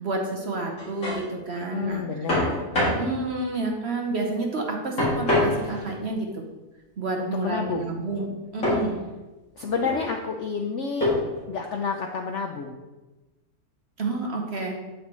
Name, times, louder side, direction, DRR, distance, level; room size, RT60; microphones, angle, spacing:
voice 1, 0.0-2.3 2.8-6.4 7.0-9.0 14.0-14.8, right 3 dB, 50° right, 1 dB, 1.0 m, -29 dB
sound 1, 0.6-1.2 2.3-3.1 5.0-6.0 8.6-8.9 9.6-10.1 11.0-11.4, left 1 dB, 50° left, 2.9 m, -25 dB
voice 2, 1.6-2.6 7.2-7.9 9.6-11.1 11.5-12.7, left 5 dB, 70° left, 3 dB, 0.7 m, -29 dB
8.4 x 5.9 x 3.1 m, 1.1 s
omnidirectional pair, 1.8 m